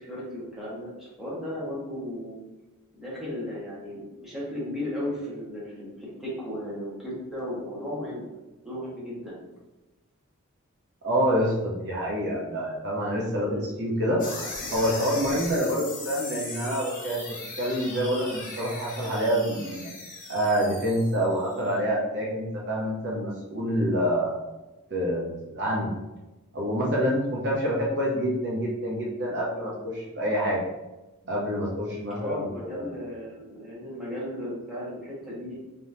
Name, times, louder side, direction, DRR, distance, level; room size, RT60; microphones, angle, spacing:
voice 1, 0.0-2.4 3.0-8.3 8.6-9.4 32.1-35.6, left 1 dB, ahead, -8 dB, 1.4 m, -35 dB
voice 2, 11.0-14.2 14.7-17.2 17.6-19.9 20.3-24.5 24.9-25.9 26.5-30.6 31.3-32.9, equal, 50° right, -3 dB, 0.8 m, -27 dB
sound 1, 14.2-21.7, left 3 dB, 40° left, 0.8 m, -38 dB
4.2 x 3.5 x 2.7 m, 1.1 s
head